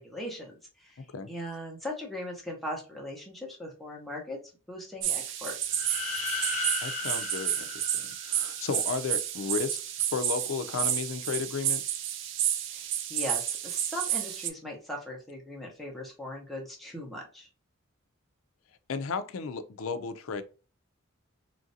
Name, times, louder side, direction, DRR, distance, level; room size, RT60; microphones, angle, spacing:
voice 1, 0.0-4.4 4.7-5.7 12.7-17.5, left 1 dB, ahead, 0.8 m, -39 dB
sound 1, 5.0-14.5, right 10 dB, 60° right, 0.4 m, -31 dB
sound 2, 5.7-8.6, left 3 dB, 35° left, 0.9 m, -35 dB
voice 2, 6.8-9.8 10.1-11.8 18.9-20.4, left 5 dB, 80° left, 0.4 m, -34 dB
3.1 x 2.5 x 2.6 m
head